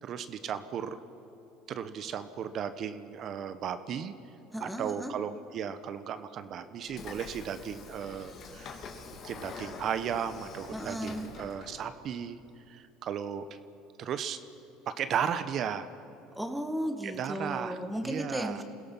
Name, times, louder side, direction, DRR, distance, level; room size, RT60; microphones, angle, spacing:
voice 1, 0.0-1.0 1.7-4.1 4.6-8.8 9.2-12.4 12.7-13.6 14.0-14.4 15.0-15.9 17.0-17.8 18.0-18.6, right 8 dB, 50° right, 11 dB, 1.1 m, -35 dB
voice 2, 4.5-5.1 10.7-11.3 16.3-18.6, equal, 5° right, 6 dB, 1.7 m, -35 dB
Train / Sliding door, 6.9-11.9, left 5 dB, 50° left, 2.3 m, -45 dB
28.0 x 17.0 x 5.6 m, 2.8 s
hypercardioid pair, 85°, 0 cm